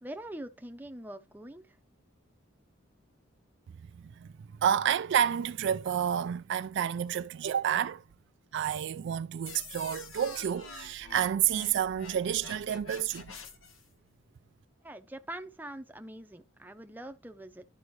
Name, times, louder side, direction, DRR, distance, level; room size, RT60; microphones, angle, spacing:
voice 1, 0.0-1.8 14.8-17.6, right 1 dB, 10° right, 0.7 m, -43 dB
voice 2, 4.6-8.0 8.5-13.3, right 9 dB, 60° right, 0.3 m, -29 dB
sound 1, 9.5-13.9, left 4 dB, 80° left, 1.3 m, -47 dB
12.0 x 4.8 x 3.1 m
head